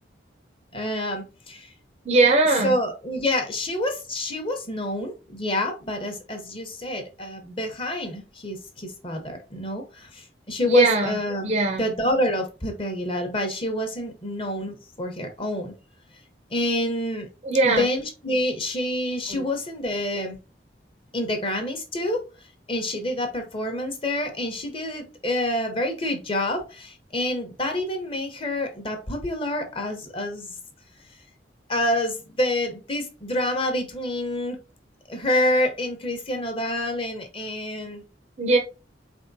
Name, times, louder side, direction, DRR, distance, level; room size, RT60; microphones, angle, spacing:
voice 1, 0.7-1.7 2.6-11.5 11.8-15.7 16.5-17.3 17.6-20.4 21.1-22.2 22.7-30.6 31.7-34.6 35.1-38.0, left 1 dB, 30° left, 0.8 m, -27 dB
voice 2, 2.1-2.8 10.6-11.8 17.4-17.8 19.3-19.5 38.4-38.6, right 2 dB, 40° right, 0.5 m, -20 dB
4.2 x 3.5 x 2.7 m
head